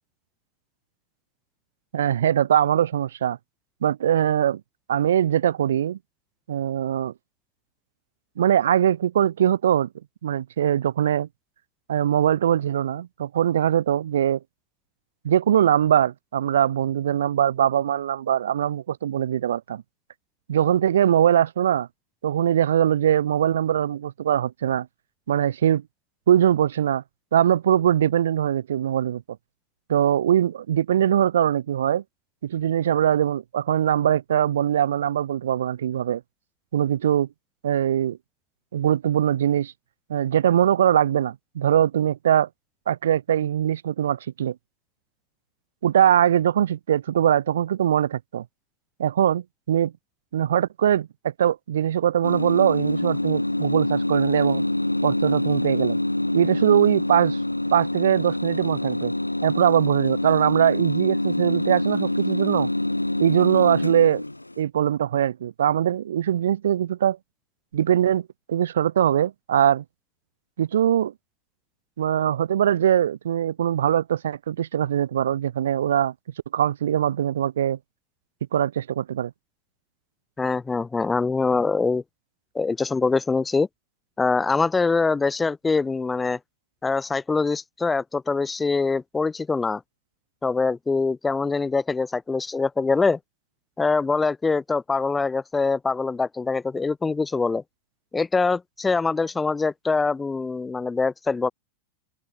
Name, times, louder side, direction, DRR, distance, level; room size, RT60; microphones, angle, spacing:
voice 1, 1.9-3.4 3.8-4.6 4.9-6.0 6.5-7.1 8.4-9.9 10.2-11.3 11.9-14.4 15.2-19.8 20.5-21.9 22.2-24.9 25.3-25.8 26.3-27.0 27.3-29.2 29.9-32.0 32.4-36.2 36.7-37.3 37.6-38.2 38.7-39.7 40.1-42.5 42.9-44.5 45.8-48.4 49.0-49.9 50.3-54.6 55.0-56.0 56.3-57.4 57.7-59.1 59.4-62.7 63.2-64.2 64.6-67.2 67.7-69.8 70.6-71.1 72.0-76.1 76.5-77.8 78.5-79.3, right 10 dB, 65° right, 0.6 m, -21 dB
sound 1, 52.2-64.6, left 1 dB, 85° left, 0.9 m, -25 dB
voice 2, 80.4-82.0 82.5-83.7 84.2-86.4 86.8-89.8 90.4-93.2 93.8-97.6 98.1-101.5, left 4 dB, 10° left, 0.9 m, -24 dB
figure-of-eight pair, 90°, 0 cm